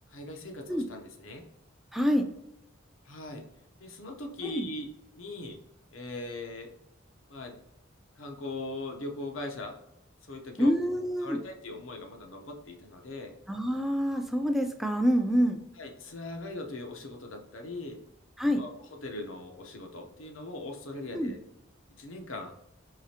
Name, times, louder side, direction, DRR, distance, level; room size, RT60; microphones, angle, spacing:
voice 1, 0.1-1.5 3.0-3.5 3.8-4.8 5.1-5.6 5.9-6.7 7.3-7.6 8.2-9.8 10.2-10.8 11.2-13.3 15.8-18.0 18.5-21.4 21.9-22.5, left 2 dB, 85° left, 3 dB, 0.7 m, -40 dB
voice 2, 1.9-2.3 4.4-4.7 10.6-11.4 13.5-15.6 18.4-18.6 21.1-21.3, equal, ahead, 5 dB, 0.4 m, -26 dB
4.8 x 3.2 x 2.8 m, 0.86 s
head